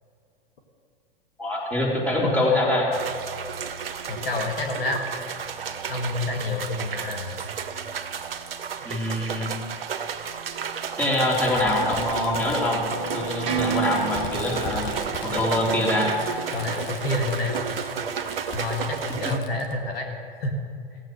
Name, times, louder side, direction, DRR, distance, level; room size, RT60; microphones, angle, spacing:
voice 1, 1.4-2.9 8.9-9.5 11.0-12.8 13.1-14.8 15.2-16.1 19.2-19.3, left 1 dB, 5° left, -4 dB, 3.5 m, -24 dB
sound 1, 2.9-19.4, right 7 dB, 75° right, 0.9 m, -32 dB
voice 2, 4.1-5.1 5.9-7.3 16.5-17.6 18.5-20.1 20.4-20.6, left 2 dB, 80° left, 2 dB, 1.8 m, -28 dB
Fireworks, 6.7-6.8 7.9-8.0 9.2-9.3 11.0-19.7, left 4 dB, 40° left, 1.4 m, -41 dB
sound 2, 12.0-17.1, right 5 dB, 50° right, 1.8 m, -33 dB
17.0 x 7.7 x 6.1 m, 2.5 s
hypercardioid pair, 105°, 29 cm